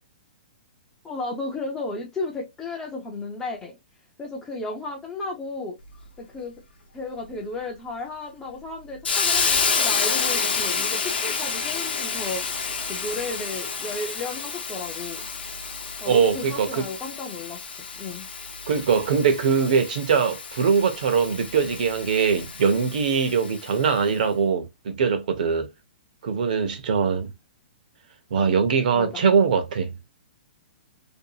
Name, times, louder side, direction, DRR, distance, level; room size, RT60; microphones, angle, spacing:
voice 1, 1.0-3.8 4.2-5.8 6.2-6.6 6.9-12.4 12.9-15.3 16.0-17.6 18.0-18.3 28.9-29.2, left 2 dB, 10° left, 0.4 m, -34 dB
Hiss, 9.0-23.8, left 5 dB, 80° left, 0.7 m, -29 dB
voice 2, 16.1-16.8 18.7-25.7 26.2-27.3 28.3-29.9, right 6 dB, 55° right, 0.7 m, -22 dB
2.6 x 2.3 x 2.7 m
hypercardioid pair, 175°, 5 cm